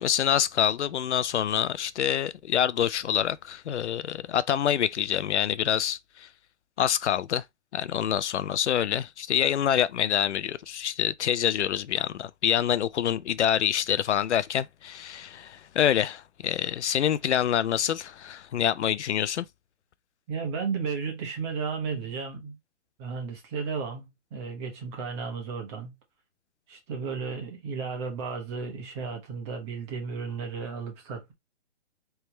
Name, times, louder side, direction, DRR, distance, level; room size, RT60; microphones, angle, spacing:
voice 1, 0.0-6.3 6.8-7.4 7.7-19.5, left 10 dB, 80° left, 0.5 m, -26 dB
voice 2, 20.3-22.6 23.0-26.0 26.7-31.3, right 5 dB, 25° right, 1.3 m, -34 dB
4.2 x 3.4 x 3.1 m
hypercardioid pair, 160°, 35 cm